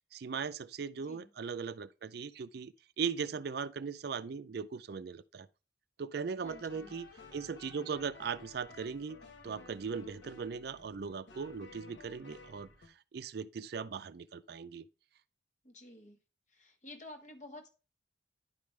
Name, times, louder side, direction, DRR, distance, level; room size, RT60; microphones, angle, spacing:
voice 1, 0.1-5.5 6.0-7.1 7.3-9.2 9.4-12.7 13.1-14.8, right 6 dB, 55° right, 0.4 m, -39 dB
voice 2, 1.0-1.3 6.4-6.9 15.6-16.2 16.5-17.7, left 2 dB, 40° left, 1.3 m, -51 dB
sound 1, 6.4-12.9, left 3 dB, 75° left, 1.3 m, -54 dB
10.5 x 5.1 x 3.2 m
head